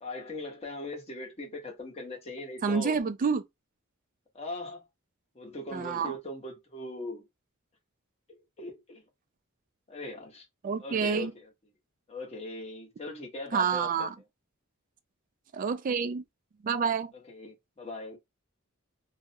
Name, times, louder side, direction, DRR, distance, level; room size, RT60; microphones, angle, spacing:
voice 1, 0.0-2.9 4.3-4.8 5.3-7.2 8.3-9.0 9.9-10.5 10.8-11.5 12.1-14.1 17.1-18.2, left 2 dB, 30° left, 0.8 m, -40 dB
voice 2, 2.6-3.4 5.7-6.2 10.6-11.3 13.5-14.1 15.5-16.2 16.6-17.1, right 6 dB, 40° right, 0.3 m, -28 dB
2.4 x 2.0 x 2.6 m
head